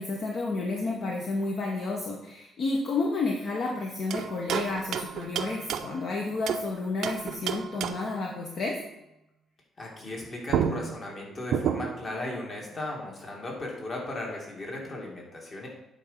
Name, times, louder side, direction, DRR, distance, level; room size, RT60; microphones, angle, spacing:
voice 1, 0.0-8.8, left 3 dB, 50° left, 0 dB, 1.0 m, -31 dB
sound 1, 4.1-6.7 7.0-8.2 10.1-10.2 10.5-12.1, right 8 dB, 70° right, 0.5 m, -31 dB
voice 2, 9.8-15.7, left 2 dB, 35° left, -2 dB, 2.2 m, -36 dB
8.8 x 3.9 x 5.6 m, 0.92 s
cardioid pair, 120°, 0 cm